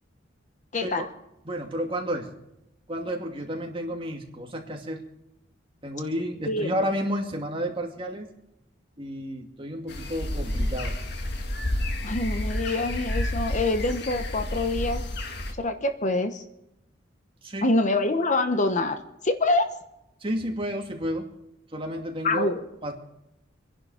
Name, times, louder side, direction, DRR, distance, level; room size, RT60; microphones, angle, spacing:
voice 1, 0.7-1.1 6.5-6.7 12.0-15.0 15.6-16.4 17.6-19.7 22.2-22.6, left 2 dB, 40° left, 8 dB, 1.0 m, -25 dB
voice 2, 1.4-2.3 2.9-5.0 5.8-8.3 9.0-11.0 17.4-17.7 20.2-21.3 21.7-22.5 22.8-22.9, equal, 30° right, 1 dB, 2.5 m, -31 dB
sound 1, 9.9-15.5, left 1 dB, 60° left, 1.8 m, -30 dB
26.0 x 11.0 x 5.0 m, 0.87 s
head